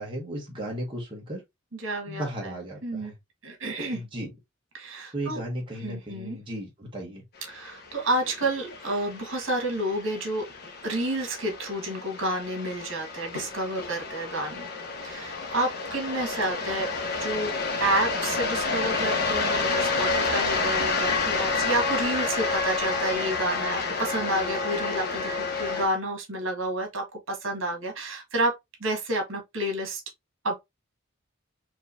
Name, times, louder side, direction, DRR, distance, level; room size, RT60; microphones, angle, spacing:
voice 1, 0.0-1.4 2.1-3.2 3.9-4.3 5.1-7.2, right 1 dB, 25° right, 1.3 m, -35 dB
voice 2, 1.7-2.5 2.8-3.1 3.4-4.0 4.7-5.4 5.8-6.4 7.5-10.5 10.8-14.7 15.0-16.9 17.2-28.5 28.8-30.0 30.4-30.5, right 1 dB, 70° right, 1.7 m, -30 dB
sound 1, 7.5-25.9, left 4 dB, 50° left, 1.0 m, -29 dB
4.6 x 2.9 x 2.7 m
head